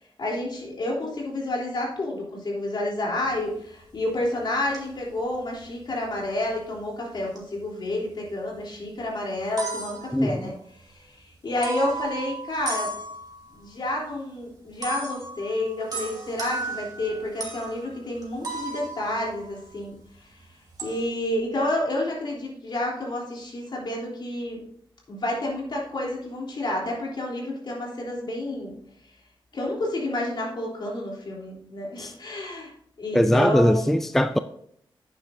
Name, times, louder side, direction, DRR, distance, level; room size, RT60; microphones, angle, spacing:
voice 1, 0.2-10.5 10.8-12.9 13.5-20.0 20.8-24.6 25.1-28.7 29.5-32.7 33.0-34.0, left 1 dB, 60° left, 3.4 m, -29 dB
sound 1, 3.2-3.3 3.8-4.2 4.7-5.3 5.5-6.1 7.1-7.5 7.8-8.6 9.0-9.1 9.3-10.9 11.6-13.6 14.8-20.1 20.3-21.0, right 3 dB, 45° right, 2.7 m, -36 dB
voice 2, 33.1-34.4, equal, 5° left, 0.4 m, -20 dB
11.5 x 9.0 x 2.7 m
wide cardioid pair, 115°, 9 cm